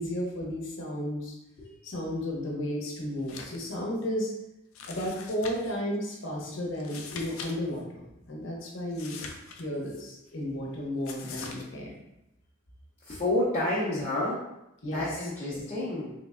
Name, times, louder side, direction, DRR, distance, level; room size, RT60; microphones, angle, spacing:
voice 1, 0.0-1.3 1.8-4.3 4.9-9.2 9.6-12.0 14.8-15.0 15.5-15.6, equal, 65° left, -2 dB, 0.9 m, -33 dB
sound 1, 3.2-3.7 4.0-4.1 4.7-5.8 6.7-7.5 7.8-7.9 8.9-10.0 11.0-11.6, left 5 dB, 90° left, 0.5 m, -42 dB
voice 2, 13.1-14.5 14.9-16.1, left 1 dB, 30° left, -8 dB, 0.7 m, -29 dB
3.5 x 3.2 x 2.4 m, 0.88 s
head